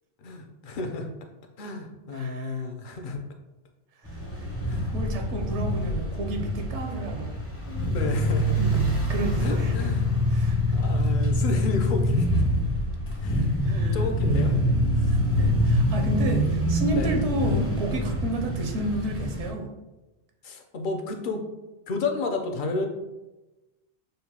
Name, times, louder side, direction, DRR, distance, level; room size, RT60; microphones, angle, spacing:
voice 1, 0.2-1.1 1.6-3.2 4.7-4.9 7.7-8.6 9.4-10.1 10.7-12.3 13.2-14.6 14.9-15.2 16.9-17.1 20.4-21.4 21.9-22.9, left 3 dB, 55° left, 3 dB, 0.7 m, -32 dB
voice 2, 2.1-2.6 4.4-4.5 4.9-7.3 8.6-9.7 10.3-10.8 13.6-14.0 15.1-19.7, right 2 dB, 85° right, 4 dB, 0.9 m, -31 dB
sound 1, 4.1-19.5, left 1 dB, 15° left, 0.6 m, -25 dB
6.5 x 2.3 x 2.8 m, 1.0 s
omnidirectional pair, 1.2 m